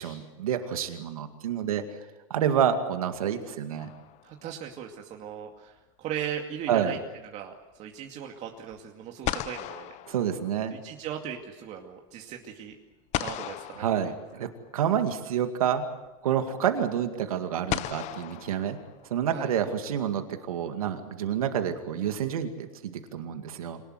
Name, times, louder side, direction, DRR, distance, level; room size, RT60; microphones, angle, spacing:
voice 1, 0.0-1.8 2.3-3.9 6.7-7.0 10.1-10.8 13.8-15.8 16.2-18.8 19.1-23.8, right 9 dB, 90° right, 7 dB, 2.2 m, -28 dB
sound 1, 3.8-4.6 8.7-8.8 9.2-11.0 13.1-14.7 16.1-16.2 17.7-19.3, left 15 dB, 40° left, 1.0 m, -36 dB
voice 2, 4.2-7.0 7.3-10.0 10.7-12.7 13.2-13.8 19.3-19.5, right 9 dB, 40° right, 2 dB, 2.4 m, -38 dB
26.0 x 19.5 x 8.1 m, 1.1 s
supercardioid pair, 125°, 18 cm